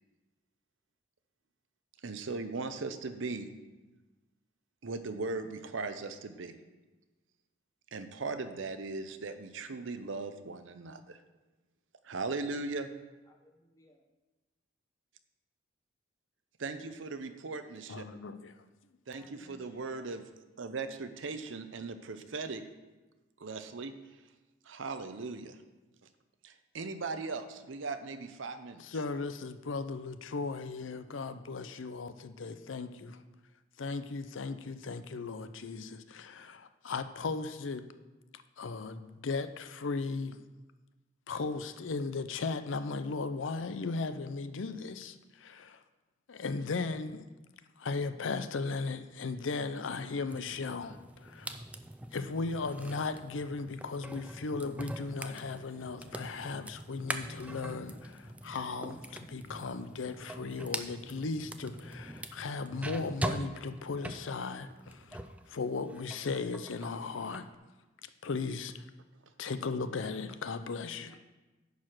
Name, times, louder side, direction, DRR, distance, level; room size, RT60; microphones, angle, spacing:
voice 1, 2.0-3.5 4.8-6.5 7.9-11.2 12.0-12.9 16.6-18.0 19.1-20.2 20.6-22.6 23.4-23.9 24.7-25.6 26.4-28.8, right 3 dB, 75° right, 9 dB, 0.7 m, -38 dB
voice 2, 13.3-14.0 19.1-20.1 71.1-71.2, left 1 dB, 15° left, 3 dB, 0.9 m, -60 dB
voice 3, 17.9-18.6 28.8-33.2 33.8-37.9 38.3-40.4 41.3-45.8 46.3-47.3 47.8-51.6 52.1-67.5 68.0-68.8 69.4-71.2, left 4 dB, 80° left, 11 dB, 0.5 m, -37 dB
sound 1, 50.3-65.4 65.8-67.5, right 1 dB, 5° right, 0.3 m, -43 dB
10.5 x 4.8 x 6.0 m, 1.1 s
head